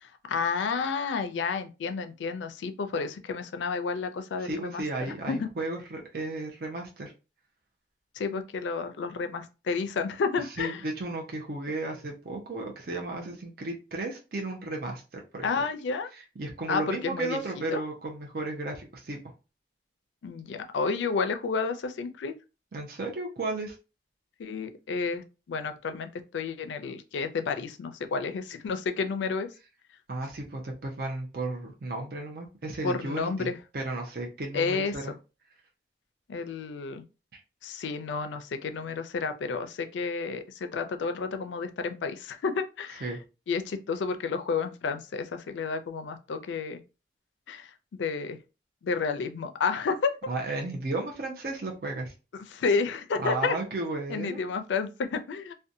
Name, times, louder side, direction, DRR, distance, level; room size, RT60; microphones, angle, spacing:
voice 1, 0.0-5.5 8.2-10.8 15.4-16.1 16.7-17.4 17.7-17.8 20.2-22.3 24.4-29.5 32.8-33.6 34.5-35.1 36.3-37.0 37.6-43.1 43.5-46.8 47.5-48.4 48.8-50.2 52.5-53.6 54.1-55.5, left 5 dB, 85° left, 0.4 m, -31 dB
voice 2, 4.4-7.1 10.6-15.5 16.1-19.2 22.7-23.8 30.1-35.1 37.3-37.4 43.0-43.2 50.3-52.1 53.2-54.5, right 2 dB, 55° right, 0.5 m, -34 dB
2.5 x 2.2 x 2.6 m
head